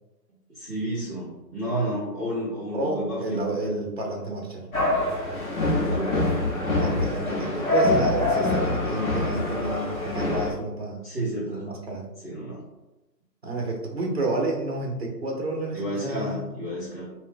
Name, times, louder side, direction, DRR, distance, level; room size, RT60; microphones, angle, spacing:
voice 1, 0.5-3.4 5.6-6.3 6.6-6.8 11.0-11.6 12.2-12.6 15.7-17.0, right 1 dB, 10° left, -20 dB, 1.1 m, -31 dB
voice 2, 2.7-4.7 6.8-11.0 11.5-12.1 13.4-16.5, right 2 dB, 40° right, 0 dB, 0.8 m, -30 dB
sound 1, 4.7-10.5, left 2 dB, 55° left, 1.2 m, -25 dB
3.2 x 2.8 x 3.4 m, 1.0 s
hypercardioid pair, 175°, 50 cm